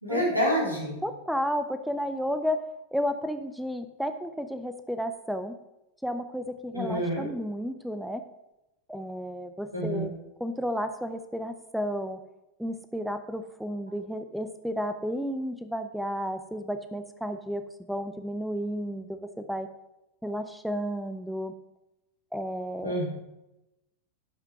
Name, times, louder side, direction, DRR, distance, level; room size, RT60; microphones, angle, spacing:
voice 1, 0.0-1.0 6.7-7.3 9.7-10.1 22.8-23.1, equal, 85° right, -3 dB, 4.1 m, -27 dB
voice 2, 1.0-2.6 2.9-5.5 6.0-8.2 8.9-10.1 10.4-12.2 12.6-19.7 20.2-21.5 22.3-23.0, equal, ahead, 9 dB, 0.7 m, -32 dB
12.0 x 6.0 x 5.8 m, 0.93 s
figure-of-eight pair, 90°, 0 cm